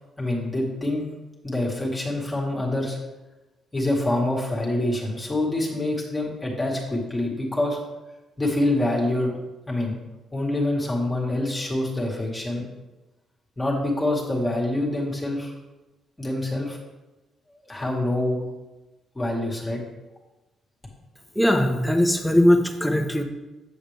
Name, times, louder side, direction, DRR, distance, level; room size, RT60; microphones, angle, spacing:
voice 1, 0.2-1.1 1.4-3.0 3.7-7.8 8.4-9.3 9.7-10.0 10.3-12.6 13.6-15.5 16.2-16.8 17.6-18.4 19.2-19.8, left 1 dB, 15° left, -3 dB, 1.9 m, -26 dB
voice 2, 21.4-23.2, left 1 dB, ahead, 4 dB, 0.9 m, -20 dB
7.6 x 7.1 x 3.5 m, 1.1 s
cardioid pair, 90°, 0 cm